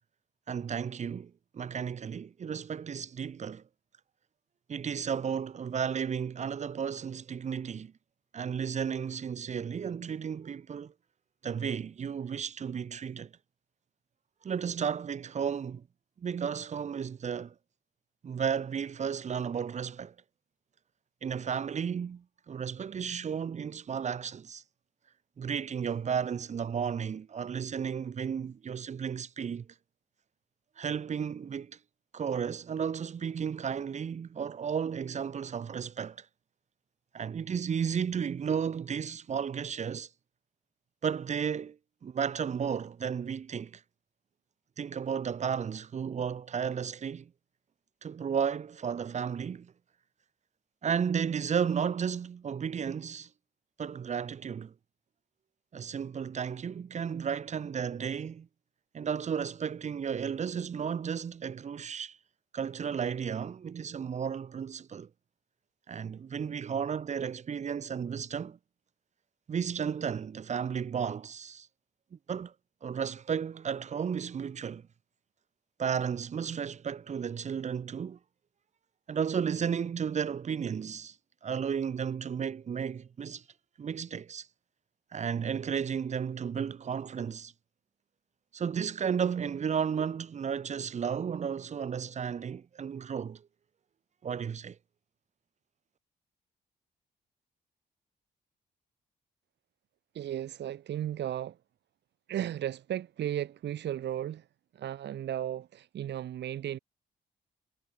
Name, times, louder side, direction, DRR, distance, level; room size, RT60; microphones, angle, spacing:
voice 1, 0.5-3.6 4.7-7.9 8.3-10.9 11.4-13.3 14.4-15.8 16.2-17.5 18.2-20.1 21.2-24.6 25.4-29.7 30.8-31.8 32.1-36.3 37.1-40.1 41.0-41.8 42.0-43.8 44.8-47.3 48.0-49.7 50.8-53.3 53.8-54.7 55.7-58.5 58.9-62.2 62.5-65.1 65.9-68.6 69.5-71.7 72.3-72.5 72.8-74.8 75.8-78.2 79.1-81.2 81.4-83.4 83.8-84.5 85.1-87.5 88.5-93.4 94.2-94.8, right 7 dB, 40° right, 0.5 m, -33 dB
voice 2, 100.1-101.6 102.3-104.5 104.7-106.8, right 11 dB, 70° right, 1.0 m, -35 dB
supercardioid pair, 55°, 19 cm